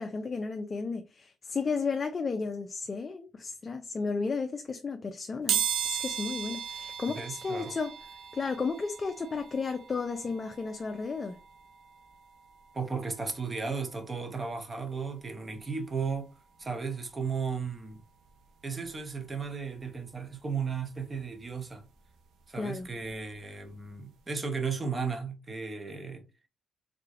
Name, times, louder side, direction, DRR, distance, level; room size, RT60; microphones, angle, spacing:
voice 1, 0.0-7.9 8.3-11.4 22.6-22.9, left 4 dB, 35° left, 0.4 m, -33 dB
sound 1, 5.5-16.2 16.6-16.7 17.9-18.0 18.3-20.3 20.7-23.3 23.7-23.9 24.2-24.3, right 8 dB, 75° right, 0.7 m, -38 dB
voice 2, 7.1-7.7 12.7-16.3 16.6-18.0 18.6-21.8 22.5-26.2, right 5 dB, 30° right, 0.9 m, -35 dB
3.7 x 3.3 x 2.5 m
cardioid pair, 90°, 0 cm